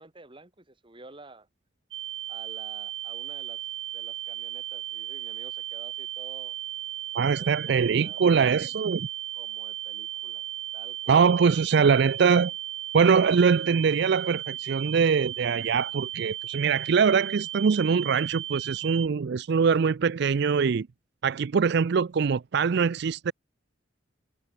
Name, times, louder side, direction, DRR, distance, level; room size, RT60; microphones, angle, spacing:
voice 1, 0.0-1.5 2.3-3.7 3.9-6.6 7.4-8.2 9.3-10.4 10.7-11.2, right 2 dB, 25° right, 2.7 m, -50 dB
sound 1, 1.9-19.1, right 13 dB, 80° right, 1.2 m, -36 dB
voice 2, 7.1-9.1 11.1-12.5 12.9-20.9 21.2-23.3, right 6 dB, 60° right, 0.4 m, -23 dB
head